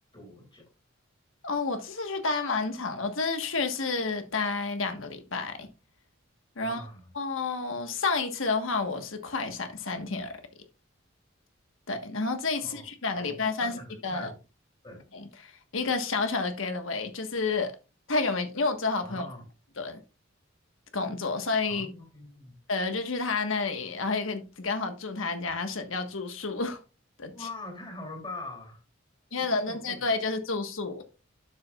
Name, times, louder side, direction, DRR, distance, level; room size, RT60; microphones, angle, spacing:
voice 1, 0.1-0.7 6.6-7.1 12.6-12.8 13.1-14.4 14.8-15.0 19.0-19.4 21.7-22.6 27.3-28.8 29.3-30.0, left 2 dB, 25° left, 3.1 m, -43 dB
voice 2, 1.4-5.7 6.6-6.8 7.1-10.4 11.9-14.3 15.1-17.7 18.1-19.3 19.8-20.0 20.9-21.9 22.7-26.8 27.2-27.5 29.3-31.0, left 3 dB, 80° left, 1.4 m, -30 dB
11.5 x 6.9 x 2.4 m
head